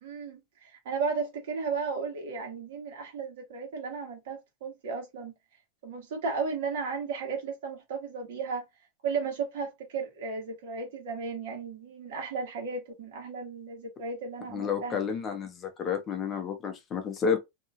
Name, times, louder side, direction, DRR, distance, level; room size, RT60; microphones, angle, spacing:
voice 1, 0.0-5.3 5.8-8.6 9.0-15.0, right 5 dB, 70° right, 1.3 m, -34 dB
voice 2, 14.5-17.4, left 6 dB, 20° left, 0.6 m, -30 dB
2.8 x 2.2 x 2.8 m
supercardioid pair, 165°, 0 cm